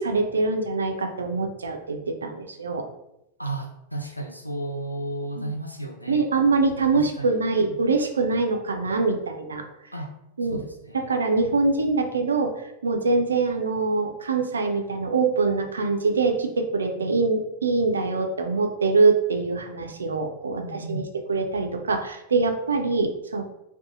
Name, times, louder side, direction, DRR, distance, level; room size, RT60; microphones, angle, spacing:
voice 1, 0.0-2.8 5.4-5.5 6.1-9.6 10.4-10.6 10.9-12.5 12.8-21.0 21.3-23.4, right 3 dB, 70° right, 4 dB, 0.3 m, -24 dB
voice 2, 3.4-6.3 6.9-7.8 9.9-10.1 10.5-11.1 17.0-17.1 20.6-21.1, right 1 dB, 90° left, 3 dB, 0.4 m, -34 dB
2.6 x 2.3 x 2.4 m, 0.83 s
figure-of-eight pair, 90°, 0 cm